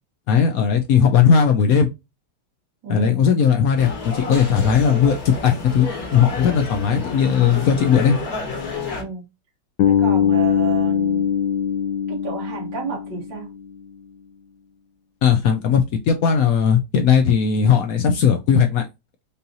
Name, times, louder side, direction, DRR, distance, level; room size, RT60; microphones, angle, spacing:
voice 1, 0.3-1.9 2.9-8.2 15.2-18.9, left 7 dB, 70° left, 0.8 m, -17 dB
voice 2, 2.8-3.3 9.0-9.2 9.9-11.3 12.1-13.5, right 5 dB, 85° right, 2.4 m, -31 dB
sound 1, 3.8-9.0, left 4 dB, 55° left, 1.8 m, -30 dB
Bass guitar, 9.8-13.7, left 8 dB, 90° left, 1.4 m, -21 dB
5.4 x 2.6 x 2.7 m
omnidirectional pair, 1.9 m